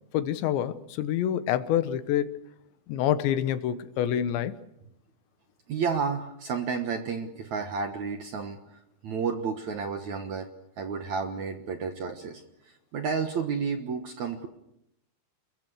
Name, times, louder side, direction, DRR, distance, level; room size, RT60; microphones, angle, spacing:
voice 1, 0.1-2.4 2.9-4.5, left 11 dB, 90° left, 3.5 m, -27 dB
voice 2, 5.7-8.6 9.0-10.5 10.8-12.4 12.9-14.5, right 5 dB, 60° right, 2.0 m, -31 dB
28.0 x 23.0 x 6.5 m
omnidirectional pair, 5.0 m